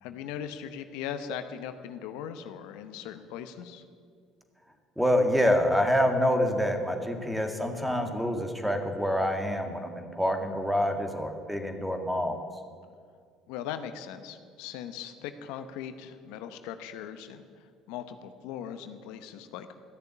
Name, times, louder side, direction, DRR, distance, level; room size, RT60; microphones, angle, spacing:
voice 1, 0.0-3.8 13.5-19.8, left 8 dB, 80° left, 9 dB, 0.8 m, -39 dB
voice 2, 5.0-12.4, equal, 5° right, 5 dB, 1.9 m, -26 dB
14.0 x 6.8 x 9.9 m, 2.1 s
supercardioid pair, 75°, 0 cm